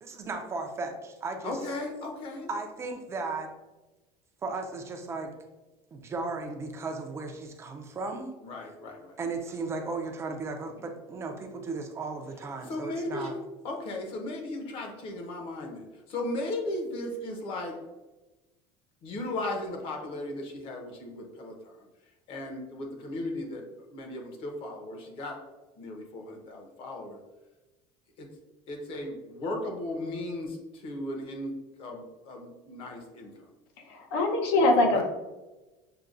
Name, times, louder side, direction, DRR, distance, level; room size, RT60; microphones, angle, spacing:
voice 1, 0.0-1.6 2.5-3.5 4.4-5.3 5.9-8.4 9.2-13.3, right 3 dB, 20° right, 4 dB, 0.5 m, -35 dB
voice 2, 1.4-2.5 8.4-9.2 12.7-13.3 13.6-17.8 19.0-21.8 22.3-23.7 23.9-25.4 25.8-27.2 28.2-28.3 28.7-33.3 34.9-35.0, left 2 dB, 40° left, 2 dB, 0.8 m, -36 dB
voice 3, 33.9-35.0, left 2 dB, 80° left, 3 dB, 0.8 m, -23 dB
6.6 x 2.2 x 2.5 m, 1.1 s
cardioid pair, 160°, 13 cm